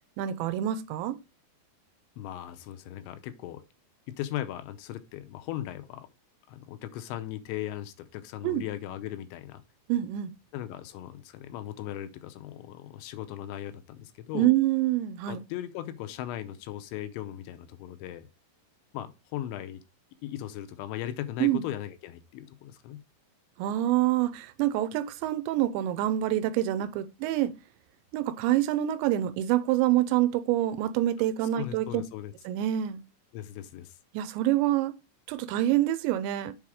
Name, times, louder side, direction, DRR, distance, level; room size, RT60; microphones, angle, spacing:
voice 1, 0.2-1.2 8.4-8.6 9.9-10.3 14.3-15.4 21.4-21.6 23.6-27.5 28.1-32.0 32.5-33.0 34.1-34.9 35.3-36.5, right 13 dB, 85° right, 2.8 m, -26 dB
voice 2, 2.2-3.6 4.1-6.1 6.5-9.6 10.5-14.5 15.3-18.3 18.9-19.8 20.2-23.0 31.5-32.3 33.3-34.0, left 12 dB, 80° left, 2.9 m, -38 dB
7.3 x 4.2 x 4.8 m
omnidirectional pair, 5.3 m